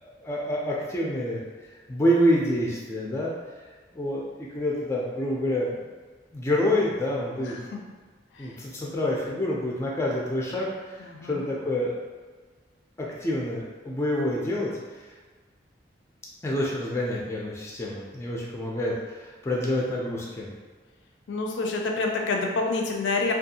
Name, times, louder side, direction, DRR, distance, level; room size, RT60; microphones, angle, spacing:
voice 1, 0.0-1.4 1.9-3.3 3.9-5.9 6.3-7.6 8.4-11.9 13.0-15.1 16.4-20.5, left 1 dB, 15° left, -4 dB, 0.3 m, -27 dB
voice 2, 11.0-11.5 21.3-23.3, left 3 dB, 80° left, 1 dB, 0.4 m, -28 dB
2.6 x 2.3 x 2.7 m, 1.4 s
head